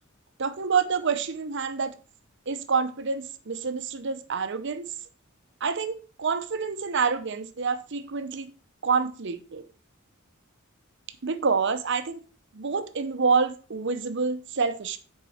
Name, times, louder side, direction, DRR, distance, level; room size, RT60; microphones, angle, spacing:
voice 1, 0.4-1.9 2.5-4.9 5.6-8.5 8.8-9.6 11.2-12.2 12.5-15.0, right 5 dB, 60° right, 0.8 m, -27 dB
7.0 x 4.7 x 4.9 m
head